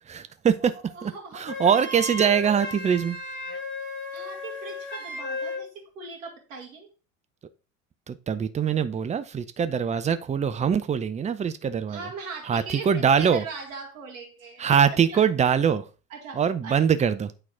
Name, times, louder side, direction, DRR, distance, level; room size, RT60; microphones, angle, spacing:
voice 1, 0.1-0.7 1.0-3.2 8.1-12.1 12.4-13.4 14.6-15.9 16.3-17.3, right 7 dB, 15° right, 0.7 m, -23 dB
voice 2, 0.9-1.5 4.1-6.9 11.9-14.6 15.1-15.2 16.1-16.8, right 4 dB, 65° right, 2.2 m, -40 dB
Wind instrument woodwind instrument, 1.5-5.7, left 2 dB, 30° left, 2.7 m, -34 dB
8.9 x 4.1 x 4.4 m
figure-of-eight pair, 75°, 42 cm